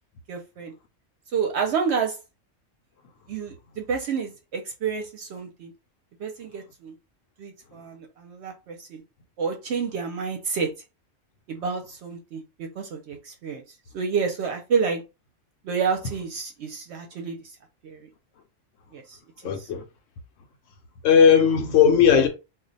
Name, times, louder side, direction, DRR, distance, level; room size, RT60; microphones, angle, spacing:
voice 1, 0.3-0.7 1.3-2.2 3.3-5.7 6.2-6.9 7.4-9.0 9.4-10.7 11.5-13.6 13.9-15.0 15.6-17.4 17.8-18.1 18.9-19.2 19.4-19.7, right 6 dB, 65° right, 0.8 m, -29 dB
voice 2, 19.4-19.8 21.0-22.3, left 7 dB, 80° left, 0.9 m, -17 dB
2.4 x 2.1 x 3.8 m
omnidirectional pair, 1.3 m